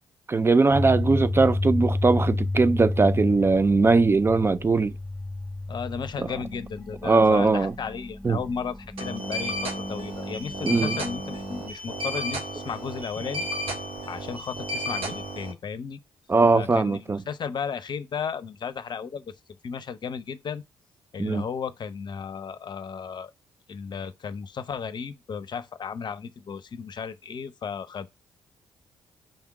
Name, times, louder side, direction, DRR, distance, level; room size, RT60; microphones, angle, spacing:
voice 1, 0.3-4.9 6.2-6.3 7.0-7.7 8.2-8.4 10.6-11.0 16.3-17.2 21.2-21.4, right 3 dB, 25° right, 0.4 m, -20 dB
sound 1, 0.7-11.6, left 2 dB, 15° left, 0.9 m, -31 dB
voice 2, 5.7-13.5 14.1-16.0 16.5-19.3 19.6-20.6 21.1-23.3 23.7-28.1, left 6 dB, 45° left, 0.7 m, -34 dB
sound 2, 9.0-15.5, equal, 60° right, 1.7 m, -33 dB
5.3 x 3.6 x 5.8 m
figure-of-eight pair, 40°, 11 cm